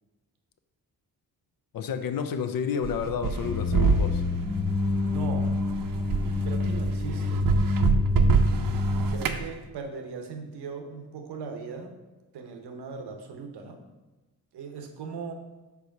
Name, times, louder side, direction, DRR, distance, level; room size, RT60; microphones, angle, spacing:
voice 1, 1.7-4.2, left 7 dB, 60° left, 9 dB, 0.6 m, -30 dB
sound 1, 2.8-9.4, right 5 dB, 60° right, 0.6 m, -27 dB
sound 2, 3.4-9.2, left 3 dB, 15° left, 0.4 m, -27 dB
voice 2, 5.0-5.5 6.1-7.5 8.5-12.0 12.3-13.8 14.5-15.3, right 5 dB, 90° right, 5 dB, 0.9 m, -39 dB
4.8 x 4.1 x 5.9 m, 1.1 s
cardioid pair, 90°, 38 cm